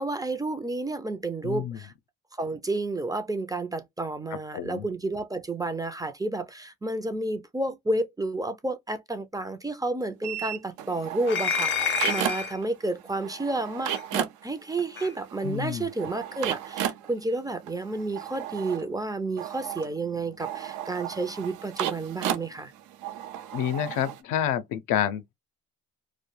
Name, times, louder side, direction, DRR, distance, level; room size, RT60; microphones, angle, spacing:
voice 1, 0.0-1.9 2.4-22.7, right 2 dB, 15° right, 0.3 m, -31 dB
voice 2, 1.4-1.8 4.5-4.8 15.4-15.9 23.5-25.3, left 10 dB, 90° left, 0.5 m, -28 dB
sound 1, 10.2-12.7 12.9-24.2, right 11 dB, 85° right, 0.5 m, -35 dB
sound 2, 11.3-12.6 13.9-14.0 15.0-15.1, left 5 dB, 40° left, 0.5 m, -28 dB
2.2 x 2.1 x 3.0 m
cardioid pair, 90°, 30 cm